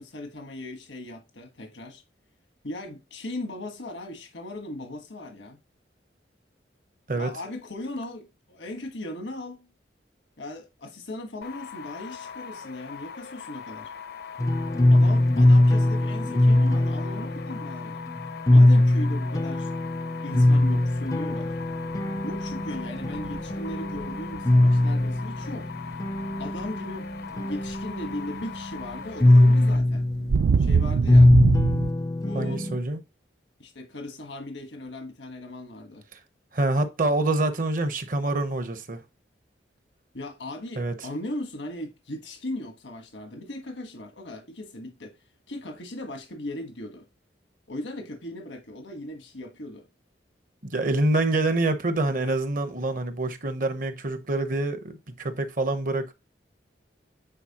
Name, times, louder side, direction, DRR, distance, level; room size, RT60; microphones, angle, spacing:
voice 1, 0.0-2.0 2.6-5.6 7.2-9.7 10.4-13.9 14.9-18.0 18.5-19.7 20.2-21.5 22.2-25.7 26.4-30.0 30.6-31.3 32.2-32.7 33.6-36.0 40.1-45.2 45.5-47.0 47.7-49.9, left 1 dB, 90° left, 1.3 m, -38 dB
sound 1, 11.4-29.8, left 6 dB, 60° left, 0.6 m, -41 dB
sound 2, 14.4-32.8, left 1 dB, 20° left, 0.4 m, -21 dB
sound 3, 20.5-20.6 21.2-21.6 22.0-25.2 26.2-26.8 27.7-28.1 28.4-31.9, right 5 dB, 65° right, 0.3 m, -25 dB
voice 2, 32.3-33.0 36.1-36.2 36.5-39.0 40.8-40.9 50.6-56.1, right 2 dB, 50° right, 0.9 m, -26 dB
9.1 x 4.2 x 2.9 m
head